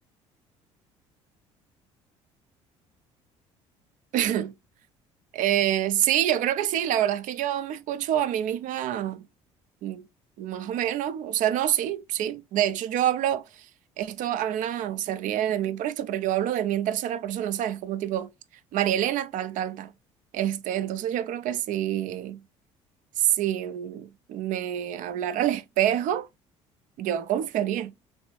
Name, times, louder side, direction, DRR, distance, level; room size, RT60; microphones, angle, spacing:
voice 1, 4.1-4.5 5.3-9.2 9.8-10.0 10.4-13.7 14.0-18.3 18.7-19.9 20.3-22.4 23.2-26.3 27.0-27.9, right 11 dB, 55° right, 0.4 m, -27 dB
3.1 x 2.6 x 3.0 m
hypercardioid pair, 60°, 16 cm